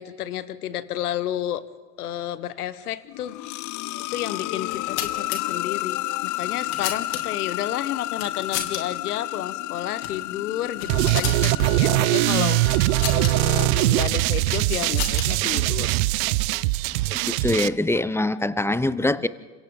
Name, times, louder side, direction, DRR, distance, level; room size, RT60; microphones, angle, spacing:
voice 1, 0.0-1.6 2.0-3.4 4.1-16.0 19.0-19.3, left 11 dB, 85° left, 15 dB, 1.1 m, -31 dB
sound 1, 3.0-13.8, left 18 dB, 45° left, 0.5 m, -32 dB
sound 2, 4.6-5.4 6.3-7.5 8.1-8.8 9.1-9.2 9.9-10.2 10.6-11.5 12.7-13.3 14.3-15.5, left 10 dB, 65° left, 2.8 m, -32 dB
sound 3, 10.9-17.7, right 19 dB, 70° right, 0.7 m, -21 dB
voice 2, 16.9-19.3, left 2 dB, 5° left, 16 dB, 0.9 m, -24 dB
30.0 x 26.5 x 3.9 m, 1.4 s
hypercardioid pair, 70°, 44 cm